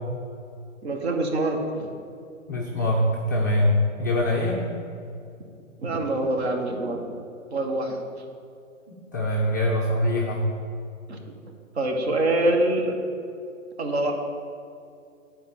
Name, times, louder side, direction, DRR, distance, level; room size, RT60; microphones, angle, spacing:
voice 1, 0.8-1.9 5.8-7.2 7.5-8.0 11.1-11.2 11.7-12.9 13.8-14.1, right 2 dB, 50° right, 3 dB, 1.6 m, -25 dB
voice 2, 2.5-4.6 8.9-10.5, left 1 dB, 15° left, -4 dB, 0.4 m, -23 dB
10.5 x 4.6 x 7.1 m, 2.5 s
figure-of-eight pair, 125°, 41 cm